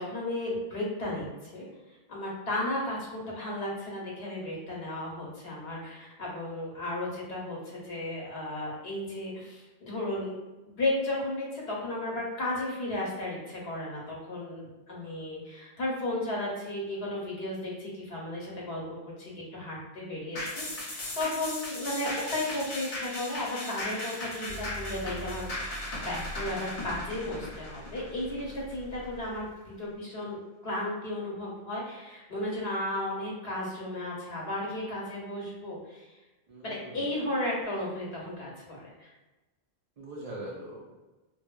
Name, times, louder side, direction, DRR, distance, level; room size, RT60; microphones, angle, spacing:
voice 1, 0.0-1.7 2.1-10.3 10.6-25.5 26.0-29.5 29.8-30.4 30.6-36.1 36.6-39.1, left 1 dB, 75° left, -4 dB, 1.0 m, -34 dB
sound 1, 20.3-29.1 29.5-29.6, left 1 dB, 45° left, 0.6 m, -37 dB
sound 2, 24.4-30.0, equal, 75° right, 0.9 m, -45 dB
voice 2, 36.5-37.3 40.0-40.9, right 1 dB, 55° right, -3 dB, 0.4 m, -42 dB
3.0 x 2.0 x 2.2 m, 1.1 s
omnidirectional pair, 1.1 m